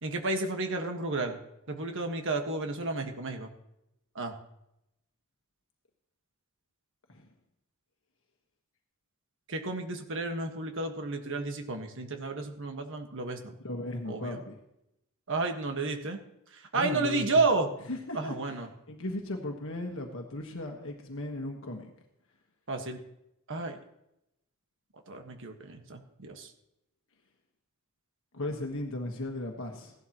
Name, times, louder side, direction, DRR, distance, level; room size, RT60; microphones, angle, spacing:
voice 1, 0.0-1.4 1.7-3.5 4.1-4.3 9.5-13.6 14.1-14.4 15.3-16.2 16.5-17.7 18.1-18.7 22.7-23.0 23.5-23.8 25.1-26.5, right 3 dB, 60° right, 5 dB, 1.5 m, -31 dB
voice 2, 13.6-14.6 16.7-17.2 17.9-18.6 18.9-21.9 28.3-29.9, left 1 dB, 60° left, 2 dB, 1.4 m, -36 dB
16.5 x 12.0 x 3.0 m, 0.84 s
head